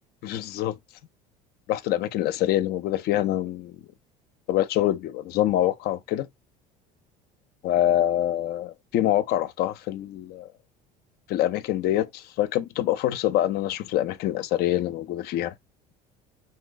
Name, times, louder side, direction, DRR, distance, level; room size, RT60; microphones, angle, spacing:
voice 1, 0.2-0.8 1.7-3.8 4.5-6.3 7.6-10.5 11.3-15.5, left 13 dB, 60° left, 0.5 m, -25 dB
2.6 x 2.1 x 3.7 m
supercardioid pair, 80°, 19 cm